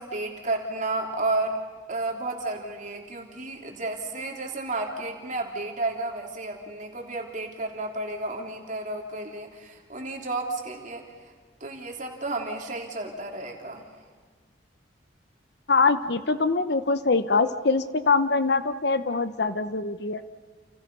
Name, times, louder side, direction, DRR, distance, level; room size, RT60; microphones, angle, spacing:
voice 1, 0.0-1.6 1.9-11.0 11.6-13.8, right 2 dB, 40° right, 2 dB, 3.4 m, -32 dB
voice 2, 15.7-20.2, left 4 dB, 55° left, 12 dB, 0.9 m, -23 dB
29.5 x 28.5 x 5.5 m, 1.5 s
head